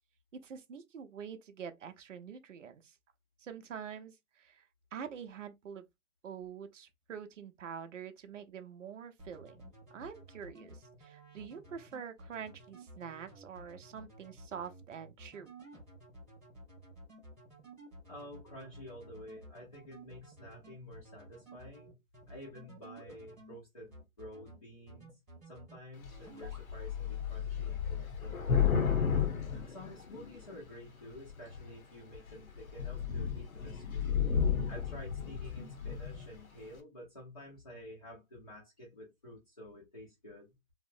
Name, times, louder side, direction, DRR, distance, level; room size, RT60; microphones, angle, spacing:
voice 1, 0.3-2.9 3.4-4.6 4.9-5.8 6.2-15.5, right 7 dB, 60° right, 0.6 m, -46 dB
sound 1, 9.2-23.5 23.9-24.6 24.9-25.8 26.1-26.6, right 1 dB, 10° right, 0.7 m, -53 dB
voice 2, 18.1-21.9 22.3-28.8 29.6-34.3 34.7-40.5, left 1 dB, 25° left, 0.6 m, -50 dB
Thunder / Rain, 26.0-26.2 26.4-30.5 31.3-31.7 32.1-32.3 32.6-36.3, left 7 dB, 85° left, 0.9 m, -32 dB
2.8 x 2.0 x 2.4 m
hypercardioid pair, 170°, 41 cm